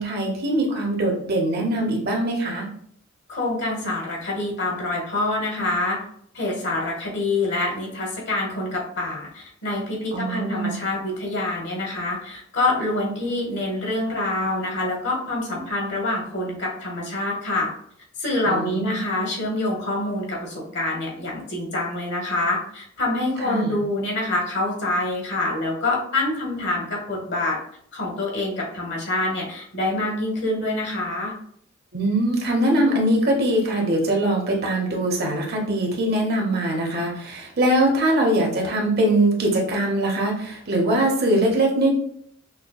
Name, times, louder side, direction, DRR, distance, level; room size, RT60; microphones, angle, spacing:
voice 1, 0.0-2.7 10.1-10.8 18.5-19.0 23.4-23.7 31.9-41.9, right 1 dB, 55° right, 0 dB, 0.9 m, -22 dB
voice 2, 3.3-6.0 6.3-17.7 18.2-27.6 27.9-31.3, left 2 dB, 60° left, -1 dB, 1.2 m, -26 dB
5.7 x 2.2 x 2.3 m, 0.66 s
head